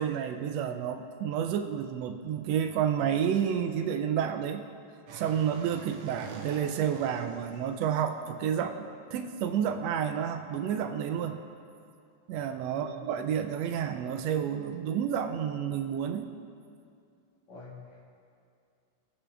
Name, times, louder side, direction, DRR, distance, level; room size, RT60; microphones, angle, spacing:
voice 1, 0.0-4.6 5.1-11.4 12.3-16.3, right 8 dB, 85° right, 6 dB, 1.5 m, -30 dB
sound 1, 5.1-7.9, right 5 dB, 70° right, 1.9 m, -45 dB
voice 2, 12.6-13.1 17.5-18.0, left 2 dB, 65° left, -5 dB, 3.2 m, -47 dB
21.0 x 7.0 x 3.4 m, 2.4 s
omnidirectional pair, 3.5 m